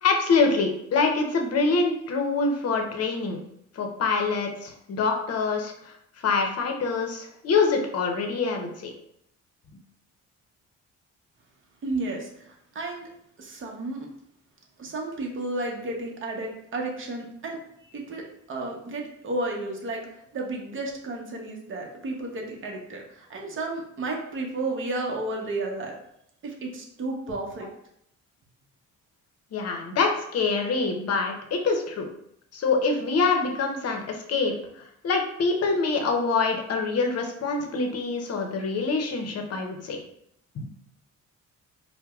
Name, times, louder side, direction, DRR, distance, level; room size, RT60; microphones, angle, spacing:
voice 1, 0.0-3.4 3.7-5.9 6.2-8.9 29.5-32.1 32.5-34.5 35.0-40.0 40.5-40.7, left 4 dB, 55° left, 3 dB, 0.7 m, -25 dB
voice 2, 11.8-13.1 13.4-14.1 14.8-25.9 26.4-27.7, right 2 dB, 40° right, 0 dB, 0.8 m, -32 dB
4.5 x 2.1 x 2.3 m, 0.73 s
cardioid pair, 90°, 30 cm